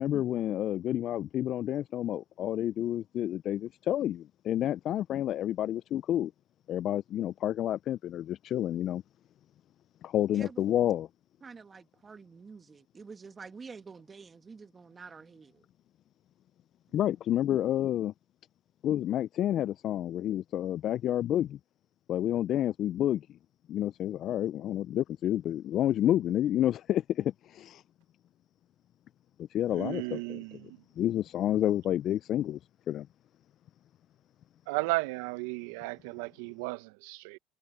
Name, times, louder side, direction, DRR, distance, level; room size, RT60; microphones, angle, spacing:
voice 1, 0.0-6.3 6.7-9.0 10.0-11.1 16.9-18.1 18.8-21.6 22.1-23.3 23.7-27.8 29.4-30.4 31.0-32.6 32.9-33.1, left 12 dB, 55° left, 0.5 m, -29 dB
voice 2, 10.3-10.6 11.4-15.7, right 5 dB, 30° right, 2.1 m, -48 dB
voice 3, 29.7-30.8 34.7-37.4, right 23 dB, 80° right, 1.1 m, -34 dB
hypercardioid pair, 70°, 0 cm